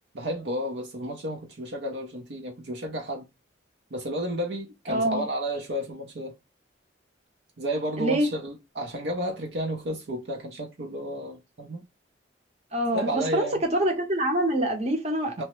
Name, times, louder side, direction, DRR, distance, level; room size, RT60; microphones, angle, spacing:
voice 1, 0.1-3.3 3.9-6.4 7.6-11.8 12.9-13.6 15.4-15.5, equal, 65° right, 0.6 m, -32 dB
voice 2, 4.9-5.2 8.0-8.3 12.7-15.4, right 1 dB, 35° right, 0.8 m, -25 dB
2.9 x 2.1 x 3.0 m
head